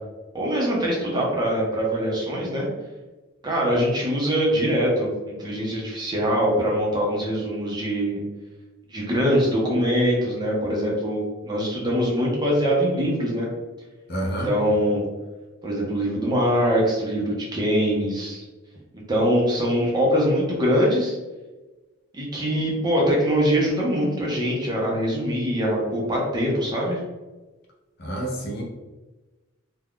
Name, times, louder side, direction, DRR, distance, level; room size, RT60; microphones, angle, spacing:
voice 1, 0.3-2.7 3.4-8.2 8.9-13.5 14.4-15.0 15.6-18.4 18.9-21.2 22.1-27.0, equal, 20° right, -3 dB, 0.6 m, -23 dB
voice 2, 14.1-14.5 28.0-28.6, right 1 dB, 45° left, -2 dB, 0.6 m, -28 dB
2.4 x 2.2 x 3.5 m, 1.2 s
head